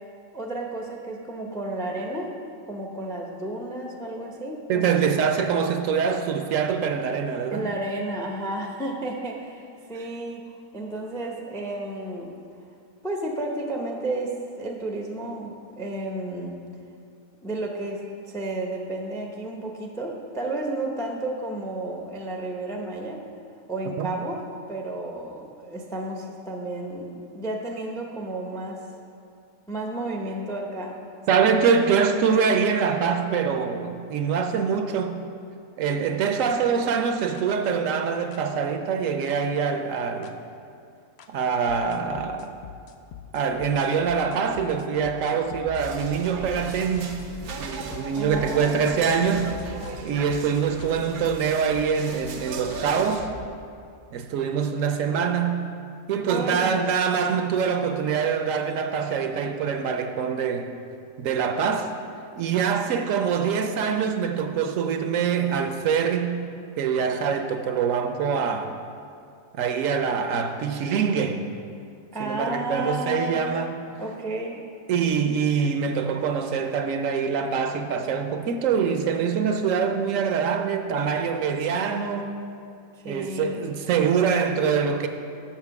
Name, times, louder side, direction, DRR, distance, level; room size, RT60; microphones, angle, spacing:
voice 1, 0.3-2.3 2.7-5.0 7.5-10.5 10.7-12.3 13.0-16.6 17.4-23.2 23.7-24.4 24.7-28.8 29.7-31.0 31.3-31.5 48.2-49.0 56.3-56.8 72.1-73.4 74.0-74.6 82.9-83.6, right 2 dB, 5° left, 1 dB, 0.3 m, -32 dB
voice 2, 4.7-7.7 24.0-24.1 31.3-35.2 35.8-40.3 41.3-42.5 43.3-47.2 47.6-49.5 50.0-53.3 54.1-55.6 56.1-60.8 61.2-61.9 62.4-66.4 66.8-68.8 69.6-71.4 72.2-73.7 74.9-82.3 83.0-85.1, right 6 dB, 70° right, 6 dB, 0.9 m, -24 dB
sound 1, 36.4-36.5 37.4-37.5 38.3-38.4 39.3-39.4 40.2-40.3 41.2-41.3 41.7-53.5, left 6 dB, 65° left, 0.7 m, -43 dB
sound 2, 45.8-53.2, right 4 dB, 90° right, 1.2 m, -38 dB
7.4 x 6.0 x 5.8 m, 2.4 s
omnidirectional pair, 1.5 m